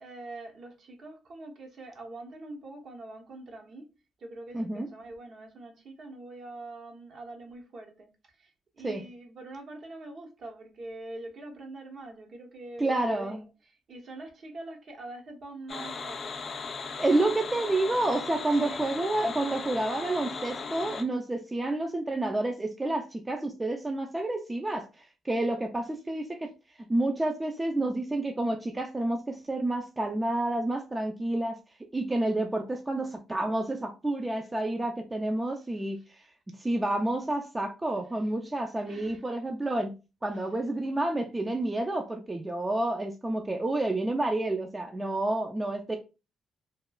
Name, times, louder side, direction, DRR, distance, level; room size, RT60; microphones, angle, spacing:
voice 1, 0.0-3.9 4.2-16.4 18.5-18.8 26.4-26.5 35.6-36.3 38.9-39.4 40.2-40.6, right 2 dB, 55° right, 0.8 m, -44 dB
voice 2, 4.5-4.9 8.8-9.0 12.8-13.4 17.0-26.5 26.9-31.6 31.9-36.0 36.6-39.9 40.2-46.0, right 2 dB, 15° right, 0.4 m, -29 dB
sound 1, 15.7-21.0, left 5 dB, 50° left, 0.4 m, -37 dB
2.9 x 2.2 x 2.2 m
cardioid pair, 90°, 0 cm